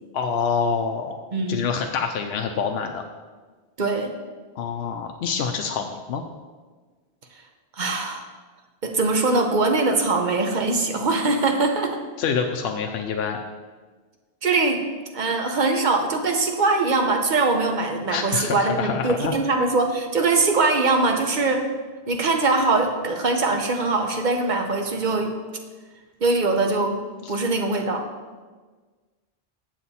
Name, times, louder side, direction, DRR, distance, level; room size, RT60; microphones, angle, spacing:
voice 1, 0.1-1.2 1.5-3.0 4.6-6.2 12.2-13.4 18.1-19.3 27.2-27.3, left 6 dB, 75° left, 3 dB, 0.8 m, -26 dB
voice 2, 1.3-1.6 3.8-4.1 7.8-8.2 8.8-12.0 14.4-14.8 15.1-21.7 22.1-25.3 26.2-27.0 27.3-28.0, right 3 dB, 50° right, 4 dB, 0.8 m, -22 dB
7.5 x 6.7 x 4.1 m, 1.4 s
omnidirectional pair, 1.1 m